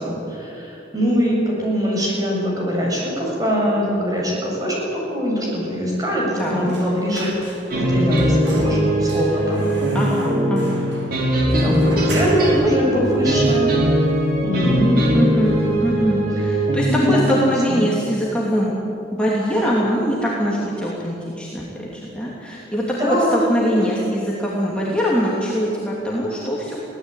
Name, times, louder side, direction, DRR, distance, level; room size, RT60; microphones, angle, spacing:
voice 1, 0.0-9.7 11.5-13.7 14.4-15.0 16.9-17.1 17.5-17.9 22.9-23.5, equal, 20° right, -3 dB, 7.3 m, -22 dB
voice 2, 6.4-6.8 9.9-10.9 12.5-12.7 15.1-18.7 19.1-26.8, equal, 5° left, -5 dB, 2.8 m, -22 dB
sound 1, 6.6-7.9 8.2-12.7 13.1-13.2 13.5-14.3 14.6-14.8 15.1-15.8 16.1-16.3, right 2 dB, 70° right, 5.8 m, -38 dB
sound 2, 7.7-17.0, right 1 dB, 50° right, 4.4 m, -20 dB
23.0 x 17.5 x 9.2 m, 2.9 s
head